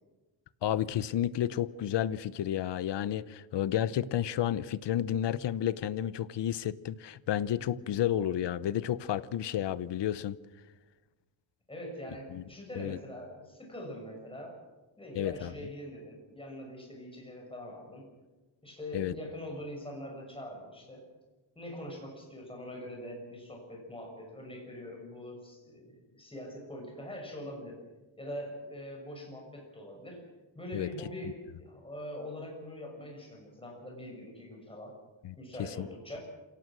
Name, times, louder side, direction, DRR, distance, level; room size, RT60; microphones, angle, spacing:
voice 1, 0.6-10.4 12.3-12.4 12.7-13.0 15.1-15.5 18.9-19.1 30.7-30.9 35.2-35.9, left 11 dB, 65° left, 17 dB, 0.9 m, -31 dB
voice 2, 11.7-14.6 15.0-18.0 18.6-21.0 21.5-27.8 28.2-30.2 30.5-35.0 35.4-36.2, left 1 dB, 10° left, 0 dB, 6.5 m, -43 dB
27.5 x 17.5 x 6.2 m, 1.1 s
wide cardioid pair, 160°, 47 cm